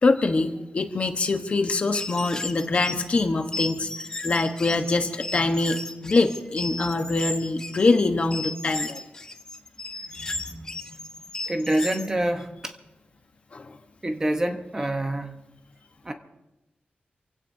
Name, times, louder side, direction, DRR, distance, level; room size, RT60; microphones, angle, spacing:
voice 1, 0.0-9.0 10.1-10.4 13.5-13.7, left 3 dB, 40° left, 1.2 m, -24 dB
sound 1, 1.9-12.1, left 2 dB, 20° left, 1.0 m, -35 dB
voice 2, 10.2-10.8 11.5-12.8 14.0-15.4 16.0-16.1, right 1 dB, 20° right, 1.1 m, -27 dB
28.5 x 16.5 x 2.8 m
wide cardioid pair, 170°, 3 cm